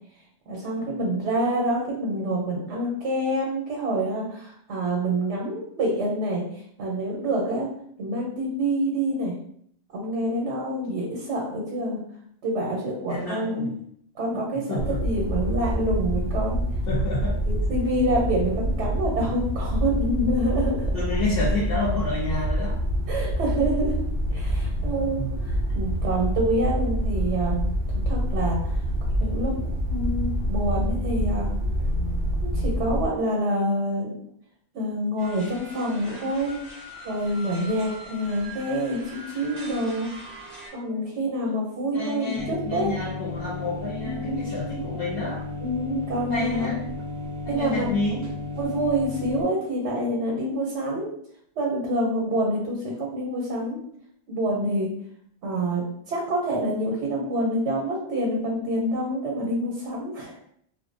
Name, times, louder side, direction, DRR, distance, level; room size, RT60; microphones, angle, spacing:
voice 1, 0.5-6.4 6.8-7.7 8.0-9.3 9.9-12.0 12.4-13.7 14.2-16.6 17.4-20.8 23.1-23.9 24.3-27.6 28.1-28.6 29.2-31.5 32.5-34.2 34.7-36.6 37.0-40.1 40.7-42.9 44.0-44.4 45.6-46.7 47.5-47.8 48.6-51.1 51.6-53.8 54.3-54.9 55.4-60.4, right 1 dB, 85° right, -3 dB, 1.0 m, -27 dB
voice 2, 13.1-13.7 14.3-14.4 14.7-15.0 16.9-17.4 20.9-22.8 24.8-25.3 41.9-45.4 46.3-46.8 47.4-48.3, left 2 dB, 60° left, -5 dB, 0.7 m, -29 dB
sound 1, 14.8-33.1, equal, 60° right, 0.8 m, -26 dB
sound 2, 35.2-40.7, right 1 dB, ahead, 1.0 m, -42 dB
sound 3, 42.4-49.4, left 2 dB, 30° right, 0.3 m, -34 dB
2.5 x 2.0 x 2.5 m, 0.66 s
omnidirectional pair, 1.2 m